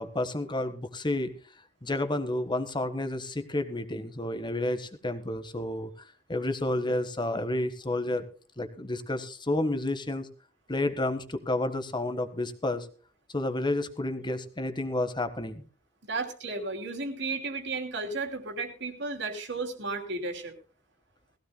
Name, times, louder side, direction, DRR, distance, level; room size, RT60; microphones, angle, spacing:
voice 1, 0.0-1.3 1.8-8.2 8.6-10.3 10.7-12.9 13.3-15.6, left 1 dB, 25° left, 10 dB, 1.4 m, -30 dB
voice 2, 16.1-20.5, right 3 dB, 65° right, 5 dB, 2.8 m, -33 dB
19.5 x 16.0 x 2.2 m, 0.38 s
head